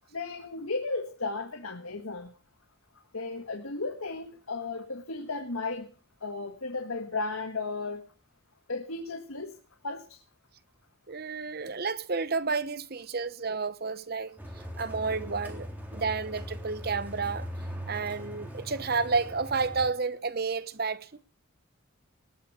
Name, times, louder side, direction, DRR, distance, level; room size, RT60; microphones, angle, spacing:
voice 1, 0.1-2.3 3.1-5.9 6.2-8.0 8.7-9.5 9.8-10.2, left 3 dB, 85° left, 1.8 m, -34 dB
voice 2, 11.1-14.4 14.8-17.5 17.9-21.1, right 4 dB, 45° right, 0.9 m, -31 dB
sound 1, 14.4-19.9, equal, 10° right, 3.3 m, -40 dB
19.5 x 8.7 x 6.7 m
head